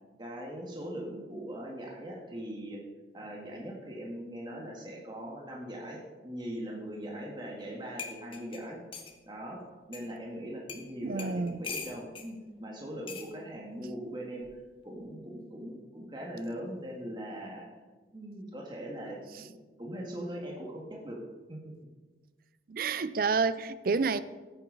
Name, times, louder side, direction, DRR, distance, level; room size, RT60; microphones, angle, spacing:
voice 1, 0.2-2.8 3.1-8.8 9.3-9.6 9.9-14.5 14.8-17.7 18.1-21.2 21.5-21.7, equal, 25° right, 1.8 m, -40 dB
sound 1, 7.6-7.7 8.0-9.2 9.9-10.0 10.7-10.9 11.2-12.3 13.1-13.3 14.4-14.7, left 5 dB, 30° left, 1.2 m, -41 dB
voice 2, 11.0-11.6 22.7-24.2, right 4 dB, 50° right, 0.4 m, -29 dB
14.5 x 9.0 x 4.0 m
head